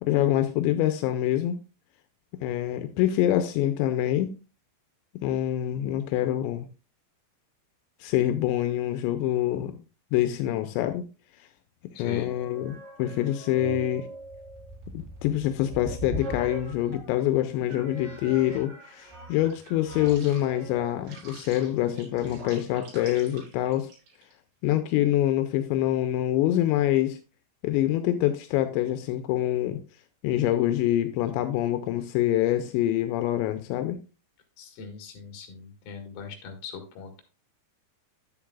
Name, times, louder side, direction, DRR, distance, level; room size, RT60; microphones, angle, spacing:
voice 1, 0.0-1.6 2.4-4.3 5.2-6.7 8.0-9.8 10.1-11.0 12.0-14.1 14.9-23.9 24.6-27.2 27.6-29.8 30.2-34.0, left 13 dB, 85° left, 8 dB, 2.9 m, -25 dB
voice 2, 11.9-12.3 34.6-37.2, left 6 dB, 65° left, 4 dB, 3.3 m, -40 dB
sound 1, 12.2-17.1 17.7-24.3, right 1 dB, 75° right, 6.5 m, -41 dB
10.0 x 8.6 x 2.3 m, 0.32 s
omnidirectional pair, 5.2 m